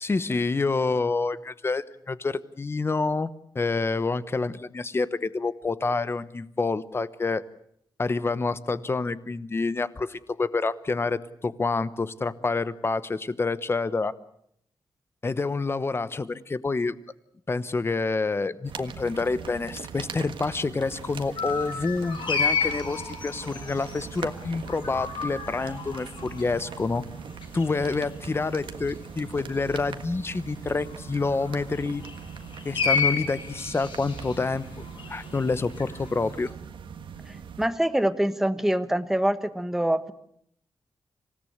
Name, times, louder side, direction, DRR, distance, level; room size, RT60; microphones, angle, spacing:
voice 1, 0.0-7.4 8.0-14.1 15.2-16.9 17.5-27.0 27.5-32.0 32.6-36.5, left 3 dB, 30° left, 15 dB, 1.0 m, -28 dB
sound 1, 18.6-37.7, right 7 dB, 80° right, 1.6 m, -41 dB
sound 2, 20.8-36.5, left 5 dB, 80° left, 8.0 m, -33 dB
voice 2, 37.6-40.1, right 1 dB, 5° right, 11 dB, 1.2 m, -24 dB
26.5 x 17.0 x 8.1 m, 0.70 s
wide cardioid pair, 130°, 8 cm